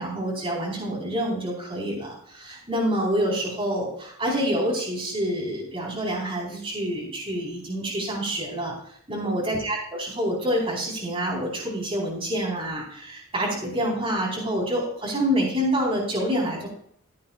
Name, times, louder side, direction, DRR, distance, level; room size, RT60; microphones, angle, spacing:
voice 1, 0.0-8.7 9.1-16.7, equal, 25° right, -3 dB, 4.5 m, -27 dB
16.5 x 9.4 x 2.5 m, 0.64 s
head